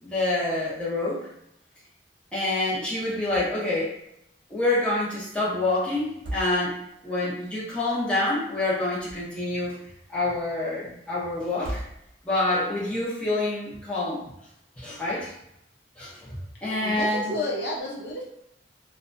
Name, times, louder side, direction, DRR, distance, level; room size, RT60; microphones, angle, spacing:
voice 1, 0.0-1.2 2.3-3.9 4.5-6.8 7.0-9.8 10.1-11.8 12.2-14.3 14.8-15.3 16.0-16.4 16.6-17.3, left 2 dB, 5° left, -9 dB, 0.8 m, -27 dB
sound 1, 3.2-3.8 4.0-4.1 6.0-7.0 8.7-9.6 11.5-12.4, right 1 dB, 60° right, 0.9 m, -38 dB
voice 2, 16.8-18.2, left 1 dB, 75° left, -4 dB, 0.8 m, -30 dB
2.7 x 2.2 x 2.6 m, 0.81 s
head